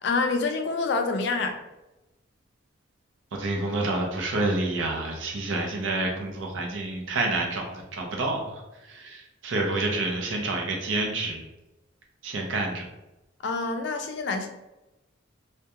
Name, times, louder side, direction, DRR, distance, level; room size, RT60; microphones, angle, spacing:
voice 1, 0.0-1.6 13.4-14.5, left 4 dB, 60° left, 6 dB, 0.3 m, -27 dB
voice 2, 3.3-11.5 12.2-12.8, right 2 dB, 80° right, 1 dB, 0.6 m, -28 dB
2.3 x 2.2 x 2.7 m, 0.97 s
head